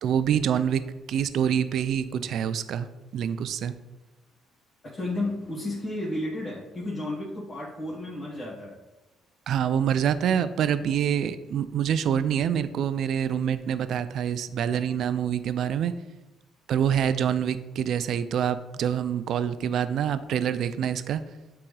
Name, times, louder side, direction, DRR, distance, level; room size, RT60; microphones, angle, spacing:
voice 1, 0.0-0.8 1.1-2.9 3.1-3.7 9.5-15.9 16.7-21.2, right 8 dB, 60° right, 13 dB, 0.3 m, -26 dB
voice 2, 4.9-8.8, left 1 dB, 35° left, -8 dB, 1.6 m, -32 dB
8.5 x 3.6 x 3.3 m, 1.1 s
cardioid pair, 130°, 0 cm